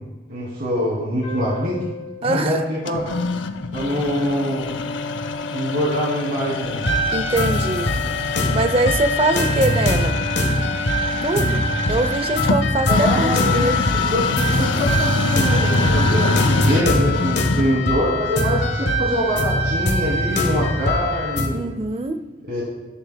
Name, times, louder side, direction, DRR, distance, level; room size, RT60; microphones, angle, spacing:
voice 1, 0.3-1.8 2.2-3.0 3.7-4.7 5.5-6.9 12.9-21.7 22.5-22.6, equal, 60° right, -8 dB, 2.6 m, -24 dB
sound 1, 1.2-4.4, left 4 dB, 40° left, 2.3 m, -39 dB
voice 2, 2.2-2.6 7.1-7.9 8.5-10.2 11.2-11.6 11.9-13.8 21.5-22.2, right 2 dB, 30° right, 9 dB, 0.5 m, -22 dB
sound 2, 2.9-17.9, left 3 dB, 85° left, 0.5 m, -25 dB
sound 3, 6.8-21.5, left 1 dB, 70° left, 1.1 m, -22 dB
17.5 x 6.9 x 2.2 m, 1.2 s
head